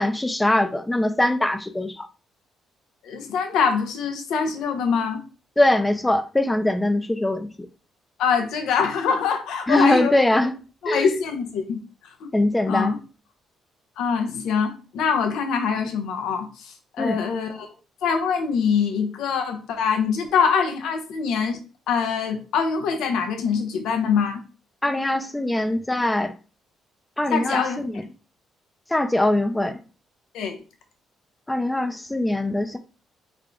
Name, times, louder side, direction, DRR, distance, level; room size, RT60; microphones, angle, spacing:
voice 1, 0.0-2.1 5.6-7.7 9.7-10.6 10.9-11.1 12.3-12.9 17.0-17.2 24.8-26.3 27.2-28.0 28.9-29.8 31.5-32.8, left 1 dB, 10° left, 0.5 m, -22 dB
voice 2, 3.0-5.2 8.2-10.1 10.8-11.8 12.2-12.3 12.7-13.0 14.0-17.7 18.0-21.6 21.9-24.4 27.3-27.9 30.3-30.6, left 6 dB, 75° left, 0.7 m, -24 dB
3.5 x 2.2 x 3.7 m
supercardioid pair, 70°, 0 cm